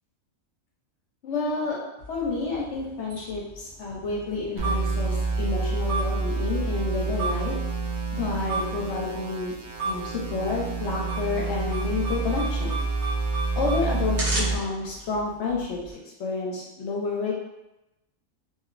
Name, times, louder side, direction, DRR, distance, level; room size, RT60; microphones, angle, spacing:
voice 1, 1.2-1.8 2.1-7.5 8.1-9.5 9.8-12.8 13.5-15.8 16.2-17.3, left 3 dB, 65° left, -2 dB, 0.8 m, -29 dB
sound 1, 2.0-15.9, right 2 dB, 55° right, 1.1 m, -36 dB
sound 2, 4.6-14.6, right 4 dB, 75° right, 0.4 m, -28 dB
2.9 x 2.8 x 2.4 m, 0.94 s
omnidirectional pair, 1.4 m